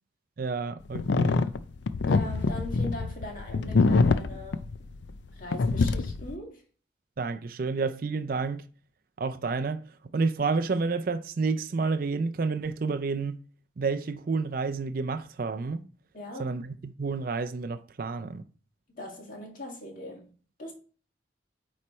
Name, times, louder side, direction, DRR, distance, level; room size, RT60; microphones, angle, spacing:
voice 1, 0.4-1.4 7.2-8.7 9.2-9.9 10.1-13.4 13.8-15.9 16.4-18.4, right 4 dB, 50° right, 0.4 m, -30 dB
sound 1, 0.9-5.3 5.5-6.3, left 3 dB, 75° left, 0.4 m, -25 dB
voice 2, 2.0-4.6 5.3-6.6 16.1-16.6 18.9-20.3 20.6-20.7, left 1 dB, 45° left, 1.9 m, -40 dB
8.7 x 3.2 x 4.2 m
head